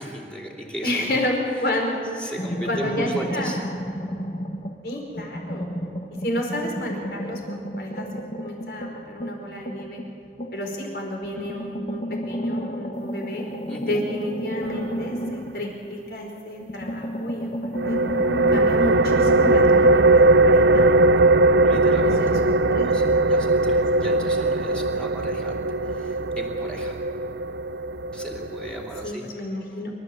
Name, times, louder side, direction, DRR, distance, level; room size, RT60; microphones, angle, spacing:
voice 1, 0.0-1.2 1.5-1.7 2.1-3.6 13.7-14.1 21.3-22.4 22.8-27.0 28.1-29.8, right 1 dB, 5° left, -1 dB, 2.9 m, -36 dB
voice 2, 0.8-1.3 1.6-2.1 2.7-3.6 4.8-5.7 6.2-10.0 10.5-13.4 13.8-18.0 18.5-20.9 22.0-22.9 24.0-24.2 29.0-29.9, left 1 dB, 60° left, 0 dB, 4.9 m, -31 dB
sound 1, 2.4-4.8 5.2-10.8 11.2-16.3 16.6-20.0, equal, 40° left, 1.3 m, -32 dB
sound 2, 17.7-29.1, right 2 dB, 80° right, 0.6 m, -19 dB
27.5 x 13.5 x 8.0 m, 2.9 s
head